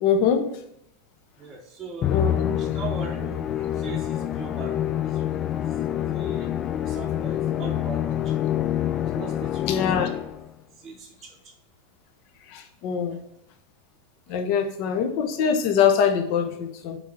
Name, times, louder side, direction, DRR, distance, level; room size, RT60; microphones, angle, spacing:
voice 1, 0.0-0.5 2.1-2.5 9.7-10.1 12.5-13.2 14.3-17.0, left 7 dB, 45° left, 6 dB, 0.9 m, -23 dB
voice 2, 1.4-2.1 2.5-4.8 5.0-5.4 6.1-6.5 6.8-8.6 9.0-10.4 10.8-11.5, right 4 dB, 20° right, -2 dB, 0.9 m, -40 dB
Musical instrument, 2.0-10.5, left 11 dB, 30° left, 0.4 m, -26 dB
5.7 x 4.8 x 5.8 m, 0.77 s
figure-of-eight pair, 90°, 0 cm